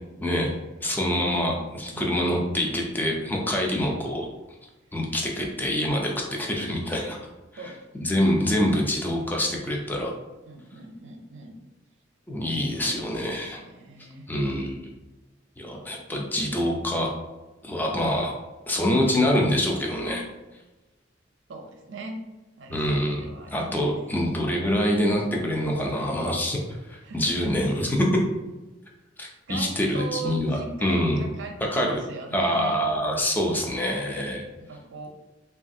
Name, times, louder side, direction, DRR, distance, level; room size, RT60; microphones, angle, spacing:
voice 1, 0.8-4.3 4.9-7.2 8.0-10.1 12.3-13.6 14.3-14.9 15.6-17.1 17.6-18.3 18.7-20.2 22.7-28.1 29.2-31.2 31.7-32.0 32.3-34.5, left 1 dB, 10° left, -1 dB, 0.4 m, -25 dB
voice 2, 1.9-2.4 7.6-7.8 10.5-11.6 12.7-14.3 15.7-16.0 21.5-22.3 22.6-24.4 27.0-27.5 29.5-32.8 34.6-35.1, right 3 dB, 75° right, 2 dB, 0.5 m, -39 dB
3.1 x 2.3 x 2.6 m, 1.1 s
head